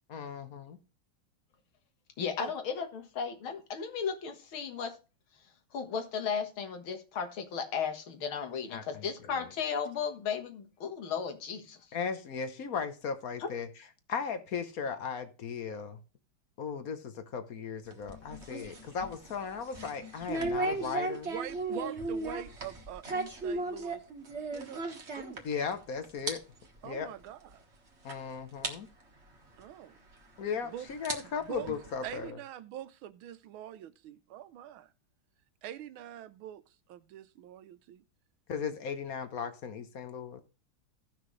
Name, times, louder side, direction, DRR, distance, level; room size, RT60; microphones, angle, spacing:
voice 1, 0.1-0.8 8.7-9.1 9.4-9.5 11.9-13.7 14.1-16.0 16.6-21.3 25.4-26.4 26.8-27.1 28.0-28.9 30.4-32.4 38.5-40.4, left 6 dB, 55° left, 1.2 m, -37 dB
voice 2, 2.2-4.9 5.7-11.8, left 6 dB, 75° left, 2.3 m, -35 dB
sound 1, 17.8-25.8 26.0-26.3 26.6-26.8 27.5-27.6 28.1-28.2 28.6-28.7 30.1-30.2 30.9-32.3, right 2 dB, 35° right, 1.6 m, -36 dB
voice 3, 21.2-24.0 24.5-24.8 25.2-25.5 26.8-27.6 29.6-30.0 30.7-30.9 31.4-31.7 32.0-34.9 35.6-36.6 36.9-38.0, right 11 dB, 80° right, 1.5 m, -44 dB
16.5 x 6.0 x 3.2 m
omnidirectional pair, 2.3 m